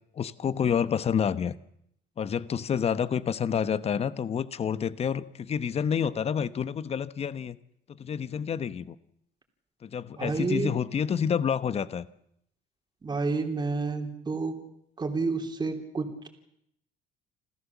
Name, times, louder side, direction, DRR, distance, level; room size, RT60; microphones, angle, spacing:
voice 1, 0.2-1.5 2.2-7.6 8.0-8.9 9.8-12.1, left 7 dB, 35° left, 15 dB, 0.9 m, -28 dB
voice 2, 10.2-10.7 13.0-14.6 15.0-16.3, right 4 dB, 25° right, 3 dB, 3.2 m, -30 dB
27.5 x 14.5 x 7.3 m, 0.74 s
cardioid pair, 110°, 17 cm